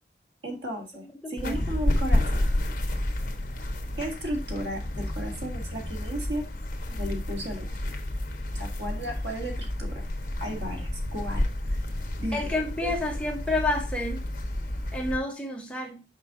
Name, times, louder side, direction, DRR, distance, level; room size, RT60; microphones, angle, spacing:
voice 1, 0.4-2.5 4.0-6.5 6.9-7.7 8.5-10.0 10.4-11.8 12.2-12.5 12.8-12.9, right 1 dB, 85° right, 1.9 m, -35 dB
voice 2, 1.2-1.6 12.3-14.3 14.9-16.0, left 2 dB, 5° left, 1.1 m, -29 dB
sound 1, 1.4-15.2, left 1 dB, 50° left, 1.2 m, -30 dB
5.6 x 5.4 x 3.8 m
head